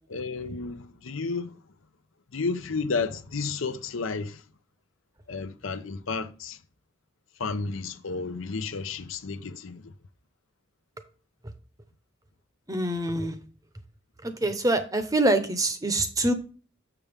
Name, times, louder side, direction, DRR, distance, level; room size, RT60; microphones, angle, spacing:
voice 1, 0.1-1.6 2.3-4.4 5.3-6.6 7.4-9.9, left 4 dB, 80° left, 0.7 m, -32 dB
voice 2, 12.7-13.4 14.2-16.3, right 2 dB, 15° right, 0.8 m, -25 dB
7.0 x 6.9 x 3.5 m
head